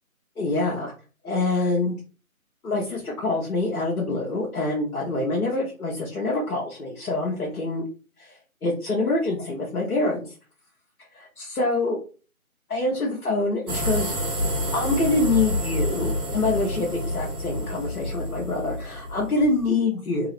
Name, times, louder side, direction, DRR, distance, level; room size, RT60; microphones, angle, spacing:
voice 1, 0.4-0.9 1.2-2.0 2.6-7.8 8.2-10.3 11.1-12.0 12.7-14.1 14.7-20.3, left 2 dB, 85° left, -3 dB, 1.1 m, -25 dB
sound 1, 13.7-19.7, left 1 dB, 85° right, 1.6 m, -28 dB
3.6 x 2.0 x 3.0 m, 0.36 s
figure-of-eight pair, 165°, 43 cm